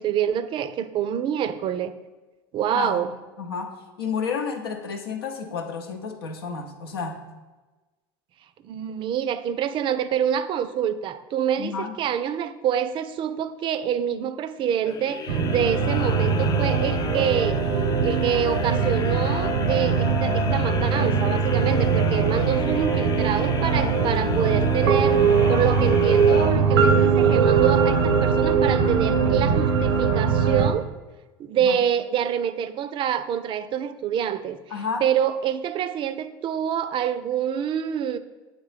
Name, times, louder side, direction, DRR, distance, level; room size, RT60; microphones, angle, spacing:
voice 1, 0.0-1.9 2.5-3.1 8.6-17.6 18.0-25.2 25.5-30.9 31.4-34.6 35.0-38.2, right 9 dB, 45° right, 13 dB, 0.4 m, -26 dB
voice 2, 3.4-7.2 11.6-11.9 31.6-31.8 34.7-35.1, left 5 dB, 90° left, 5 dB, 0.7 m, -31 dB
sound 1, 14.8-27.1, left 6 dB, 30° left, 0.4 m, -33 dB
sound 2, 15.3-30.7, right 6 dB, 85° right, 0.7 m, -21 dB
8.1 x 3.1 x 4.9 m, 1.2 s
hypercardioid pair, 85°, 12 cm